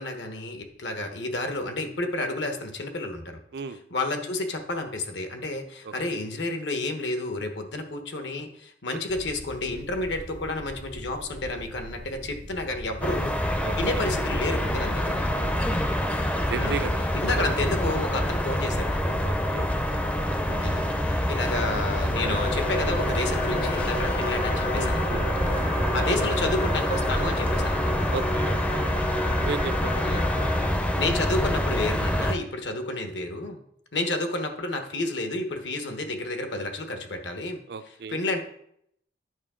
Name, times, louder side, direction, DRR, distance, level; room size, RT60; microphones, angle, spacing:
voice 1, 0.0-3.4 3.9-13.4 13.8-15.3 16.5-16.9 17.1-19.1 20.5-25.0 25.9-28.0 30.0-30.3 30.9-33.6 33.9-37.6 38.1-38.4, left 2 dB, 70° left, 5 dB, 1.1 m, -30 dB
sound 1, 9.1-19.1, equal, 85° left, 2.0 m, -42 dB
sound 2, 13.0-32.3, equal, 5° left, 0.5 m, -26 dB
voice 2, 13.6-14.0 15.3-15.6 16.5-17.0 19.2-19.7 24.2-25.3 28.1-29.0 29.4-30.2 37.7-38.2, right 4 dB, 55° right, 11 dB, 0.4 m, -35 dB
sound 3, 22.1-30.7, left 1 dB, 40° left, 0.8 m, -33 dB
9.5 x 5.5 x 3.7 m, 0.71 s
head